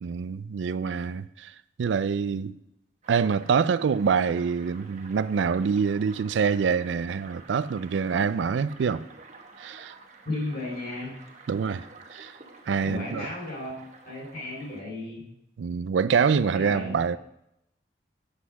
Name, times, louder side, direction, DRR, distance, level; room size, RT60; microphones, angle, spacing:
voice 1, 0.0-1.5 1.8-2.5 3.1-9.0 9.6-9.9 11.5-11.9 12.1-12.3 12.7-13.3 15.6-17.2, right 6 dB, 85° right, 0.4 m, -25 dB
sound 1, 3.0-14.8, right 4 dB, 40° right, 0.9 m, -50 dB
voice 2, 10.2-11.1 12.8-15.2 16.5-16.9, left 2 dB, 60° left, 4.1 m, -34 dB
8.1 x 5.7 x 6.2 m
head